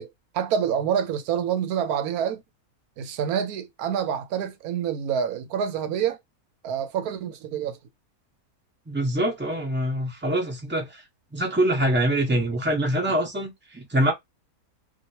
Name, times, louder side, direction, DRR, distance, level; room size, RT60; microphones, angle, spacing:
voice 1, 0.0-2.4 3.0-6.2 6.6-7.8, right 8 dB, 90° right, 1.1 m, -27 dB
voice 2, 8.9-11.0 11.3-14.1, right 1 dB, 10° right, 0.9 m, -24 dB
2.9 x 2.7 x 2.8 m
omnidirectional pair, 1.6 m